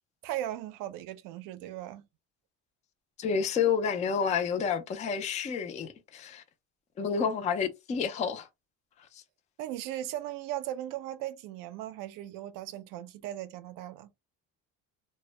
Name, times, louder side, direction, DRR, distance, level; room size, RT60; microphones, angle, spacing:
voice 1, 0.2-2.1 9.6-14.1, right 13 dB, 65° right, 0.5 m, -38 dB
voice 2, 3.2-6.4 7.0-8.5 9.1-9.2, left 6 dB, 20° left, 0.3 m, -29 dB
2.1 x 2.0 x 3.1 m
cardioid pair, 120°, 35 cm